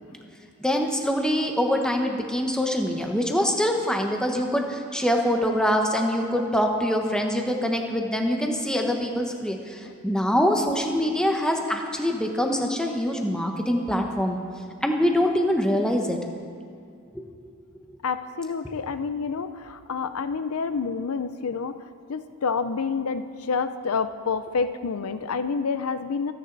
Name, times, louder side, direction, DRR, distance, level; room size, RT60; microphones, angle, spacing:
voice 1, 0.6-14.4 14.8-16.2 17.1-17.2, equal, 5° left, 2 dB, 1.1 m, -24 dB
voice 2, 18.0-26.3, left 5 dB, 75° left, 11 dB, 0.5 m, -28 dB
24.5 x 9.7 x 4.0 m, 2.4 s
head